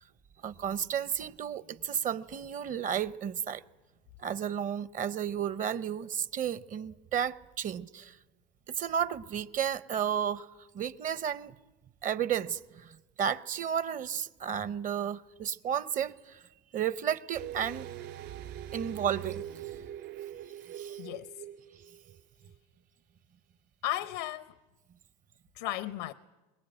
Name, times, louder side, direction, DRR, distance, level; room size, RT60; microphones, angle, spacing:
voice 1, 0.4-3.6 4.2-8.1 8.7-10.5 10.7-11.5 12.0-16.4 16.7-17.9 18.7-19.4 20.7-21.0, right 8 dB, 40° right, 0.8 m, -32 dB
sound 1, 17.3-22.2 22.4-22.5, right 11 dB, 60° right, 2.8 m, -42 dB
voice 2, 21.0-21.3 23.8-24.5 25.5-26.1, left 14 dB, 80° left, 0.8 m, -35 dB
23.0 x 21.0 x 8.9 m
supercardioid pair, 105°, 21 cm